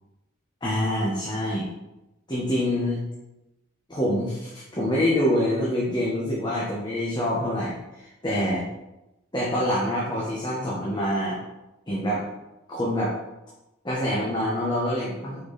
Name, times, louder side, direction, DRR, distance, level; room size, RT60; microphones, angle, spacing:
voice 1, 0.6-1.7 2.3-3.1 3.9-8.6 9.3-11.4 11.9-12.2 12.7-13.1 13.8-15.4, equal, 20° left, -5 dB, 1.1 m, -26 dB
6.6 x 4.7 x 4.0 m, 0.96 s
head